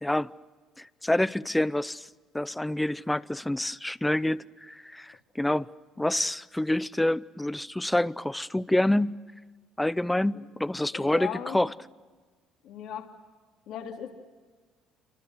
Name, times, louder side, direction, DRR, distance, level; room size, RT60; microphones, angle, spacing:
voice 1, 0.0-0.3 0.8-2.1 2.3-5.7 6.0-9.2 9.8-11.7, left 1 dB, 5° left, 0.7 m, -27 dB
voice 2, 10.9-11.6 12.6-13.1 13.7-14.1, left 9 dB, 70° left, 3.1 m, -37 dB
27.5 x 24.5 x 6.4 m
supercardioid pair, 95°, 0 cm